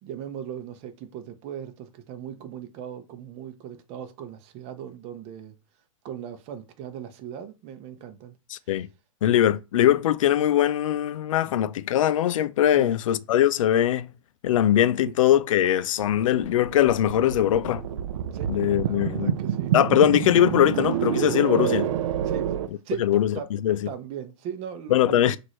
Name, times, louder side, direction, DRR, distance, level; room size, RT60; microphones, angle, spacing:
voice 1, 0.0-5.5 6.0-8.4 11.4-11.6 12.7-12.9 15.0-15.1 18.3-19.7 22.2-22.5 22.8-23.1 23.3-23.5 23.9-25.4, right 9 dB, 35° right, 0.8 m, -38 dB
voice 2, 8.5-8.9 9.2-14.1 14.4-17.8 18.5-19.3 19.7-21.9 23.0-23.9 24.9-25.4, left 11 dB, 70° left, 0.5 m, -21 dB
sound 1, 16.0-22.7, right 10 dB, 70° right, 0.5 m, -28 dB
6.1 x 2.6 x 3.1 m
hypercardioid pair, 125°, 17 cm